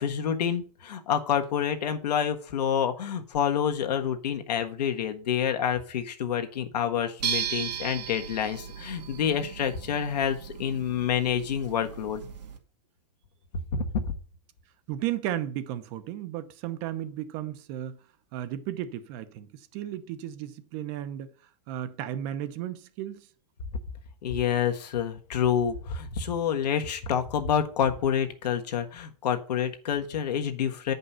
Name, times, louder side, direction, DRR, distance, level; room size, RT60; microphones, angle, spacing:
voice 1, 0.0-12.2 13.5-14.1 24.2-30.9, left 8 dB, 80° left, 1.5 m, -28 dB
sound 1, 7.2-12.6, right 8 dB, 85° right, 2.2 m, -36 dB
voice 2, 14.9-18.0 18.3-21.3 21.7-23.3, right 12 dB, 35° right, 0.8 m, -34 dB
9.0 x 5.4 x 5.6 m
supercardioid pair, 155°, 21 cm